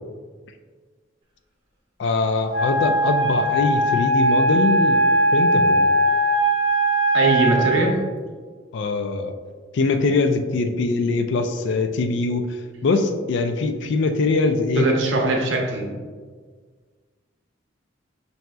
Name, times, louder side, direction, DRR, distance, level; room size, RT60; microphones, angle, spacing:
voice 1, 2.0-5.0 5.3-5.9 8.7-9.3 9.7-14.9, left 3 dB, 65° left, 7 dB, 0.3 m, -22 dB
Wind instrument woodwind instrument, 2.5-7.9, right 1 dB, 30° right, 0.7 m, -19 dB
voice 2, 7.1-8.0 14.7-16.0, right 2 dB, 75° right, 0 dB, 0.7 m, -21 dB
5.9 x 2.7 x 2.2 m, 1.5 s
head